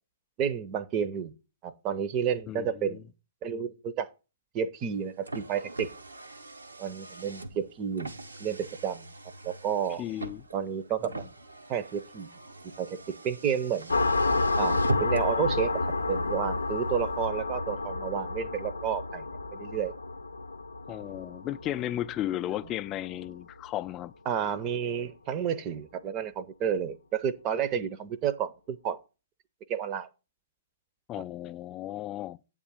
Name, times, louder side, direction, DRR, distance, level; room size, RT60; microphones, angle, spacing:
voice 1, 0.4-1.3 1.6-3.1 3.4-4.1 4.5-5.9 6.8-8.1 8.4-9.1 9.4-10.0 10.5-11.3 11.7-12.3 12.8-13.9 14.6-19.9 24.3-29.0 29.7-30.1, right 8 dB, 30° right, 0.7 m, -31 dB
voice 2, 2.5-3.0 10.0-10.4 20.9-24.1 31.1-32.4, left 13 dB, 25° left, 0.4 m, -34 dB
Car, 4.8-15.4, right 1 dB, 80° right, 0.9 m, -40 dB
sound 1, 13.9-23.2, left 3 dB, 80° left, 0.5 m, -30 dB
8.5 x 3.7 x 6.9 m
figure-of-eight pair, 115°, 0 cm